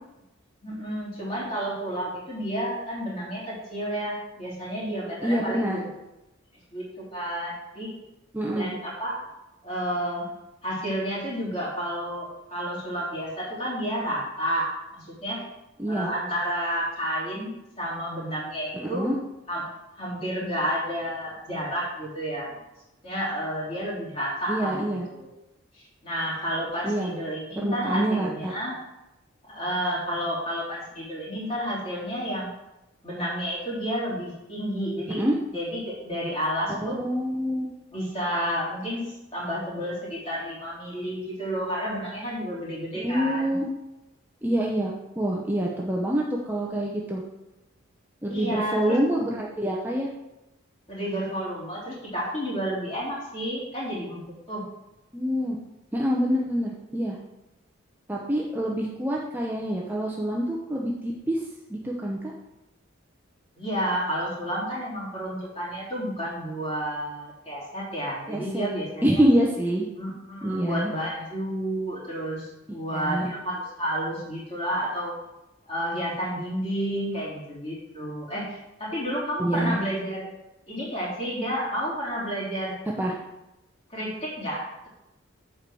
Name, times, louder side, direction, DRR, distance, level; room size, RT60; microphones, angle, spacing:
voice 1, 0.6-5.9 6.7-8.0 8.6-9.2 9.6-10.3 10.6-15.5 15.9-19.1 19.5-19.7 20.0-22.6 23.0-25.3 25.7-28.8 29.5-32.5 33.0-35.2 35.5-37.0 37.9-43.6 48.3-49.0 50.9-54.7 63.6-69.2 69.9-75.1 75.7-80.3 80.7-82.8 83.9-84.9, equal, 30° left, -6 dB, 3.3 m, -31 dB
voice 2, 5.2-5.8 8.3-8.7 15.8-16.1 18.9-19.1 24.5-25.1 26.8-27.1 27.6-28.5 35.2-35.4 36.7-37.7 42.9-43.7 44.4-47.2 48.2-50.1 55.1-55.6 55.9-57.2 58.1-62.2 68.3-68.7 69.0-69.9 70.4-70.9 72.9-73.3 79.4-79.8 83.0-83.2, right 1 dB, 10° right, -3 dB, 0.7 m, -26 dB
8.0 x 4.6 x 6.2 m, 0.95 s
head